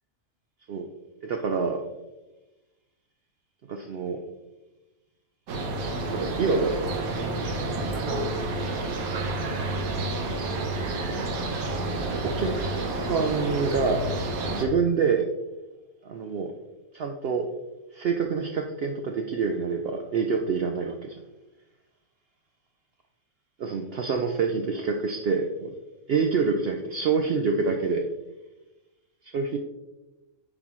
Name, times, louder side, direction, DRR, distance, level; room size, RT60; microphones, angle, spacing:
voice 1, 1.2-1.8 3.7-4.2 6.1-6.9 12.1-15.3 16.0-16.5 16.9-17.5 17.9-21.2 23.6-25.7 26.1-28.1 29.2-29.6, right 5 dB, 65° right, 4 dB, 0.6 m, -27 dB
sound 1, 5.5-14.7, right 2 dB, 85° right, 1.4 m, -29 dB
9.6 x 4.0 x 3.0 m, 1.1 s
omnidirectional pair, 1.4 m